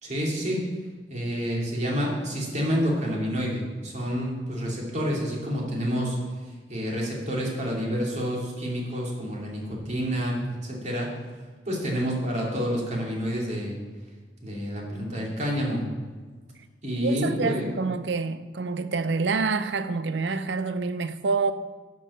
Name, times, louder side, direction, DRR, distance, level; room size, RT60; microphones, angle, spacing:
voice 1, 0.0-11.4 11.6-13.8 14.4-15.9 16.8-17.7, equal, 40° right, 2.6 m, -29 dB
voice 2, 17.0-21.5, right 4 dB, 75° right, 0.6 m, -27 dB
11.0 x 5.4 x 6.9 m
head